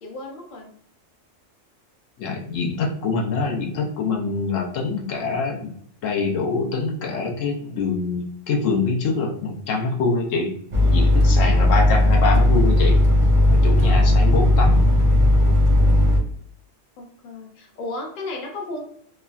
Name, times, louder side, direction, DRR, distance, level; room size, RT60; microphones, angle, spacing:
voice 1, 0.0-0.7 11.2-11.7 13.8-14.3 17.0-18.8, left 2 dB, 50° left, 1 dB, 0.7 m, -35 dB
voice 2, 2.2-5.7 6.0-10.5 10.8-13.0 13.5-14.8 15.3-15.4, left 4 dB, 80° left, 0 dB, 1.0 m, -25 dB
sound 1, 10.7-16.2, left 1 dB, 45° right, 0.5 m, -16 dB
3.4 x 2.1 x 2.3 m, 0.62 s
omnidirectional pair, 1.3 m